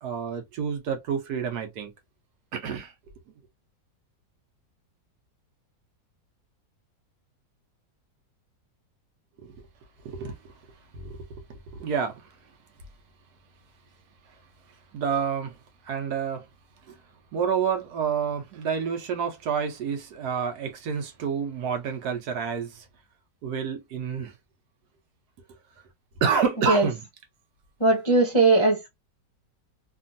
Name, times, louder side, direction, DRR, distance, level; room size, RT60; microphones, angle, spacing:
voice 1, 0.0-1.9 2.5-2.9 9.4-9.7 10.0-10.6 10.9-12.3 14.9-15.6 15.8-16.5 16.9-17.0 17.3-22.9 23.4-24.3 26.2-27.1, right 6 dB, 70° right, 1.2 m, -29 dB
voice 2, 27.8-28.9, right 2 dB, 35° left, 0.4 m, -19 dB
2.9 x 2.6 x 2.4 m
omnidirectional pair, 1.9 m